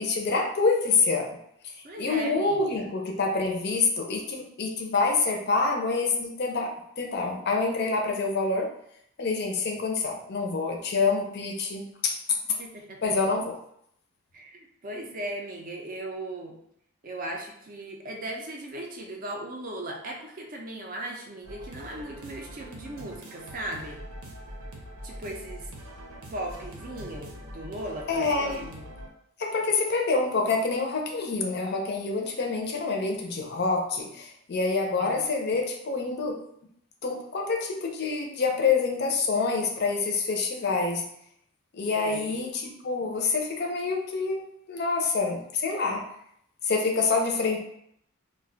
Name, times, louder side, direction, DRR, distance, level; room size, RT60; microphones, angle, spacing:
voice 1, 0.0-1.4 1.6-8.7 9.2-12.2 13.0-13.5 28.1-28.6 29.4-36.4 37.0-41.1 41.7-46.0 46.6-47.6, left 4 dB, 45° left, 1 dB, 0.4 m, -27 dB
voice 2, 1.8-2.8 12.6-13.1 14.3-16.6 17.0-24.0 25.0-25.7 26.3-29.0 35.0-35.2 41.8-42.3, right 1 dB, 40° right, 1 dB, 0.4 m, -38 dB
sound 1, 21.4-29.1, equal, 80° right, 0.7 m, -43 dB
2.4 x 2.2 x 3.8 m, 0.72 s
head